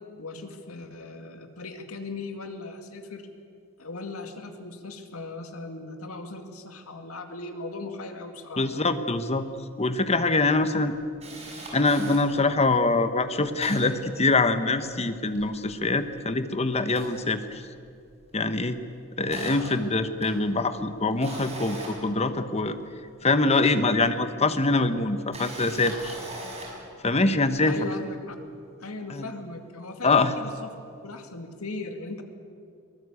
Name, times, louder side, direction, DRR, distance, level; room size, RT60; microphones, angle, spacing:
voice 1, 0.2-3.3 3.8-8.6 27.6-28.4 28.8-30.7 31.0-32.2, left 2 dB, 80° left, 5 dB, 2.3 m, -38 dB
voice 2, 8.6-9.4 9.8-11.0 11.7-17.6 18.3-18.8 19.2-22.8 23.2-26.1 27.0-27.8 29.1-29.3 30.0-30.3, left 3 dB, 30° left, 10 dB, 1.1 m, -24 dB
Camera, 9.6-9.7 10.0-10.1 10.5-12.2 12.8-12.9 13.2-14.8 15.1-16.4 16.8-17.9 18.2-18.5 18.9-22.9 24.0-24.1 25.1-26.9 27.4-27.6, right 2 dB, 30° right, 6.2 m, -41 dB
23.0 x 19.0 x 8.4 m, 2.4 s
head